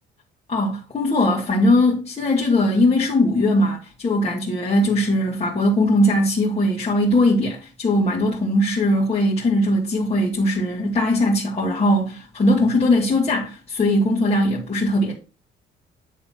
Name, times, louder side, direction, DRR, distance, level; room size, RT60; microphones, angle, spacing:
voice 1, 0.5-15.2, left 1 dB, 30° left, 2.6 m, -20 dB
9.7 x 3.9 x 5.7 m
cardioid pair, 90°, 20 cm